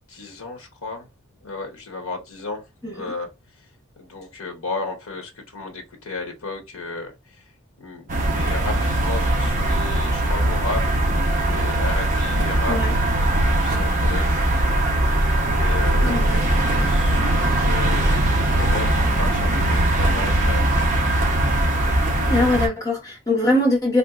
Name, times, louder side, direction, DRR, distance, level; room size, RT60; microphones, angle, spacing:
voice 1, 0.1-1.1 1.4-3.3 4.0-7.4 7.8-11.0 11.4-14.4 14.9-15.1 15.4-20.7, left 3 dB, 80° left, 0.9 m, -34 dB
sound 1, 8.1-22.7, right 1 dB, 35° right, 0.7 m, -20 dB
voice 2, 16.0-16.8 22.2-24.0, left 1 dB, 15° left, 1.1 m, -22 dB
3.5 x 2.6 x 2.3 m
head